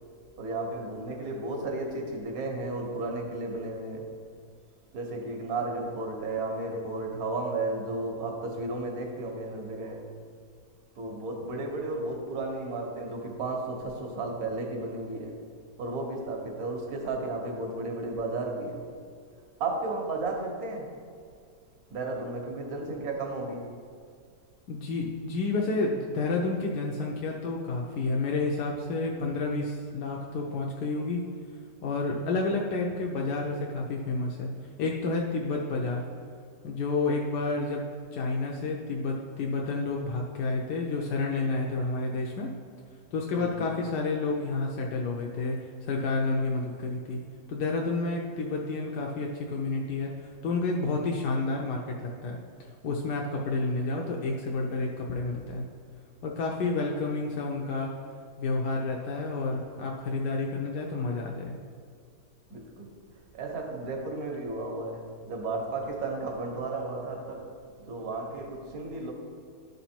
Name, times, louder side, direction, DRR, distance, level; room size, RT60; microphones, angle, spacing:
voice 1, 0.4-4.1 4.9-10.1 11.0-15.4 15.8-18.9 19.6-21.0 21.9-23.7 43.4-43.6 62.5-62.9 63.3-67.5 67.8-69.1, right 2 dB, 65° right, 1.5 m, -33 dB
voice 2, 24.7-31.2 31.8-34.5 34.8-36.0 36.6-37.8 38.1-42.5 43.1-47.2 47.5-55.6 56.2-57.9 58.4-61.5, left 3 dB, 85° left, 1.3 m, -30 dB
11.5 x 4.0 x 4.3 m
omnidirectional pair, 1.7 m